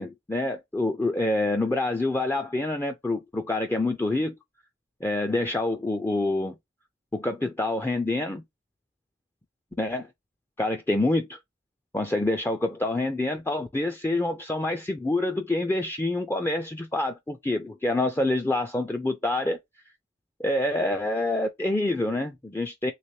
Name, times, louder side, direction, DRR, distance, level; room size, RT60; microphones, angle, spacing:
voice 1, 0.0-4.3 5.0-6.6 7.1-8.4 9.8-10.1 10.6-11.4 11.9-19.6 20.4-22.9, left 2 dB, 10° left, 0.3 m, -27 dB
3.3 x 3.1 x 2.6 m
head